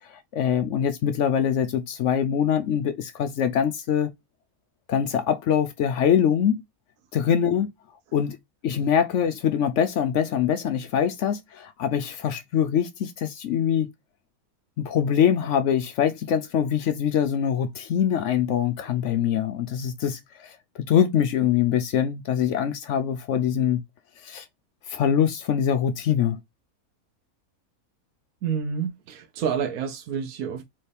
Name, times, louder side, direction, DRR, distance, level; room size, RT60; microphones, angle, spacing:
voice 1, 0.1-4.1 4.9-6.6 7.1-7.7 8.1-8.4 8.6-13.9 14.8-23.8 24.2-24.5 24.9-26.4, left 8 dB, 65° left, 0.8 m, -23 dB
voice 2, 28.4-30.6, right 7 dB, 75° right, 1.1 m, -28 dB
4.5 x 3.1 x 3.3 m
omnidirectional pair, 1.5 m